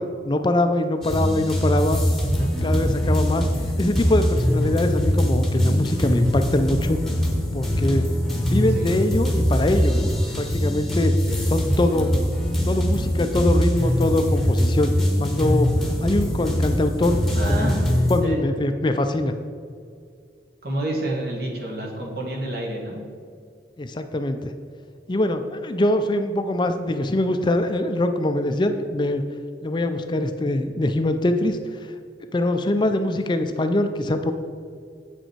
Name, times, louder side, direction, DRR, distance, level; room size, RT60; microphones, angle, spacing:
voice 1, 0.0-2.0 2.6-3.5 3.8-7.0 7.5-8.0 8.4-10.1 10.4-11.2 11.5-12.1 12.6-14.9 15.2-15.7 16.0-17.2 17.5-17.7 18.1-19.3 23.8-24.5 25.1-29.2 29.6-31.6 32.3-34.3, left 1 dB, 25° left, 8 dB, 0.4 m, -23 dB
sound 1, 1.0-18.2, equal, ahead, 1.1 m, -22 dB
voice 2, 17.3-17.9 18.2-18.4 20.6-23.0, right 1 dB, 60° right, -1 dB, 1.7 m, -29 dB
8.0 x 6.5 x 4.6 m, 2.2 s
head